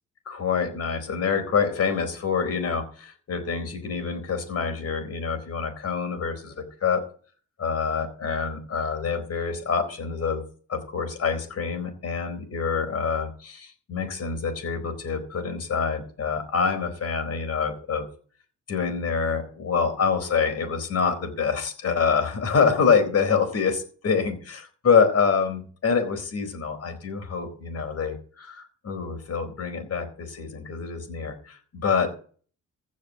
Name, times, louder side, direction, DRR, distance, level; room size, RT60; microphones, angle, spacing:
voice 1, 0.3-6.5 6.8-7.0 7.6-10.4 10.7-18.1 18.7-32.1, left 5 dB, 55° left, 7 dB, 4.2 m, -26 dB
15.5 x 5.4 x 9.0 m, 0.43 s
cardioid pair, 90°, 30 cm